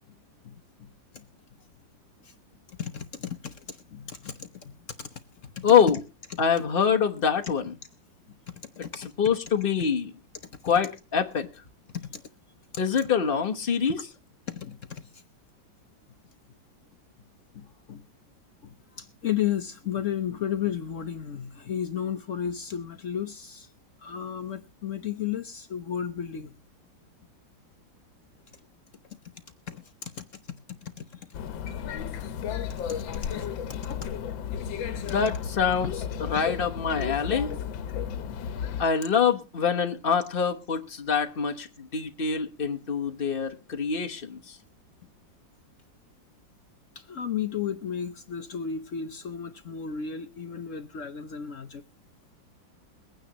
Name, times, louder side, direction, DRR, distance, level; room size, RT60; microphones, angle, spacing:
voice 1, 2.7-4.7 5.0-5.7 6.3-6.4 8.8-9.1 11.9-12.2 13.9-14.0 14.5-15.2 17.5-18.0 18.6-23.7 24.0-26.5 29.7-30.3 30.8-31.3 32.7-33.5 47.0-51.8, left 9 dB, 60° left, 0.9 m, -34 dB
voice 2, 5.6-6.0 6.4-7.7 9.2-10.1 10.6-11.5 12.8-14.0 35.0-35.9 36.2-37.5 38.8-44.6, left 7 dB, 35° left, 1.0 m, -25 dB
sound 1, 31.3-38.8, left 8 dB, 85° left, 1.6 m, -33 dB
22.5 x 9.2 x 2.9 m
omnidirectional pair, 2.1 m